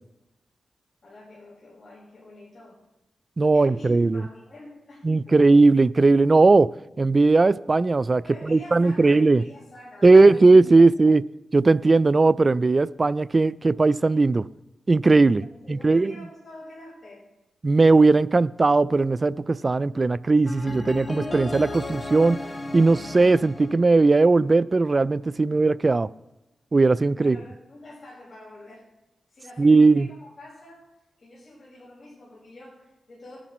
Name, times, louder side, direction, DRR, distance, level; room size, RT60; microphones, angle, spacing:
voice 1, 1.0-2.8 3.5-5.3 8.2-11.0 15.3-17.3 27.2-28.9 29.3-33.4, left 1 dB, 55° left, -7 dB, 5.2 m, -46 dB
voice 2, 3.4-4.2 5.0-6.7 7.0-9.4 10.0-11.2 11.5-14.4 14.9-15.4 15.7-16.1 17.6-22.4 22.7-26.1 26.7-27.4 29.6-30.1, right 3 dB, 35° right, 17 dB, 0.3 m, -18 dB
sound 1, 20.5-24.5, left 2 dB, 35° left, 1.6 m, -35 dB
19.5 x 10.0 x 3.1 m, 0.98 s
cardioid pair, 65°, 0 cm